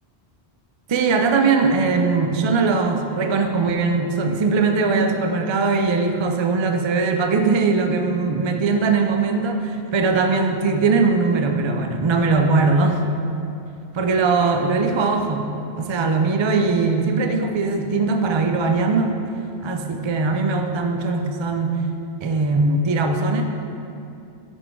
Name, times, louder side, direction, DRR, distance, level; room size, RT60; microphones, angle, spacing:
voice 1, 0.9-13.0 13.9-15.5 15.8-19.1 19.6-21.8 22.2-23.4, right 4 dB, 45° right, 4 dB, 0.3 m, -20 dB
10.5 x 4.4 x 4.5 m, 2.7 s
omnidirectional pair, 1.2 m